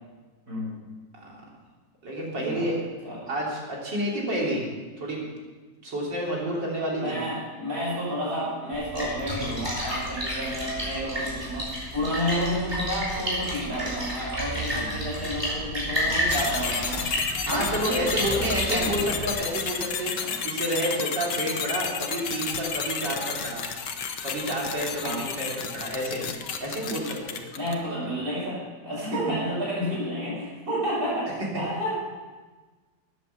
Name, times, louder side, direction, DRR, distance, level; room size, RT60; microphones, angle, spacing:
voice 1, 0.5-0.8 2.3-3.3 7.0-17.2 17.5-18.0 18.3-19.1 20.2-20.4 25.0-25.3 27.5-32.0, equal, 55° right, -5 dB, 5.9 m, -31 dB
voice 2, 2.0-2.8 3.3-4.6 5.0-5.3 5.8-7.2 14.7-14.9 17.5-20.1 20.4-23.7 24.2-26.2 26.6-27.4 29.3-29.4, right 1 dB, 80° right, -3 dB, 3.9 m, -29 dB
Splash splatter, 8.7-19.3, equal, 15° right, 4.6 m, -31 dB
sound 1, 16.3-27.9, left 6 dB, 75° left, 1.7 m, -32 dB
13.5 x 9.7 x 6.8 m, 1.3 s
omnidirectional pair, 1.9 m